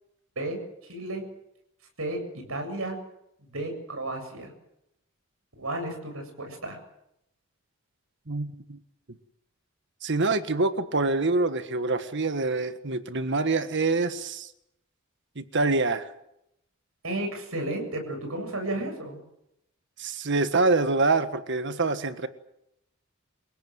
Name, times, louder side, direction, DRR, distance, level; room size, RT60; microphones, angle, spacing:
voice 1, 0.4-1.2 2.0-3.0 3.5-4.5 5.6-6.8 17.0-19.2, right 1 dB, 80° right, 4 dB, 7.7 m, -33 dB
voice 2, 8.3-8.8 10.0-14.5 15.3-16.1 20.0-22.3, right 3 dB, 60° right, 10 dB, 1.6 m, -25 dB
29.0 x 17.0 x 8.1 m, 0.80 s
head